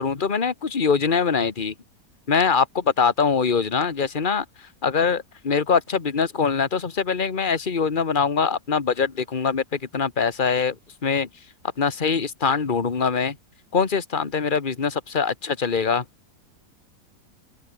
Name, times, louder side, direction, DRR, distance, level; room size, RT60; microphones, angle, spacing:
voice 1, 0.0-1.7 2.3-4.4 4.8-10.7 11.0-11.3 11.8-13.3 13.7-16.0, left 5 dB, 30° left, 1.6 m, -23 dB
open air
omnidirectional pair, 1.8 m